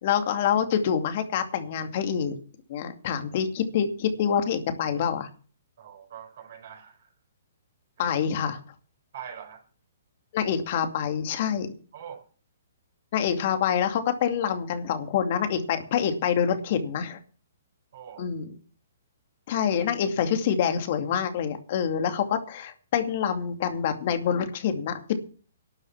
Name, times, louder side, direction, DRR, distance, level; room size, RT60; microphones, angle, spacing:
voice 1, 0.0-2.4 2.7-5.3 8.0-8.6 10.3-11.7 13.1-17.2 18.2-18.5 19.5-25.2, left 8 dB, 50° left, 7 dB, 2.5 m, -26 dB
voice 2, 5.8-7.1 8.0-8.2 9.1-9.6 11.9-12.2 17.9-18.3, right 8 dB, 55° right, 0 dB, 5.9 m, -43 dB
12.5 x 9.1 x 7.4 m, 0.39 s
hypercardioid pair, 130°, 0 cm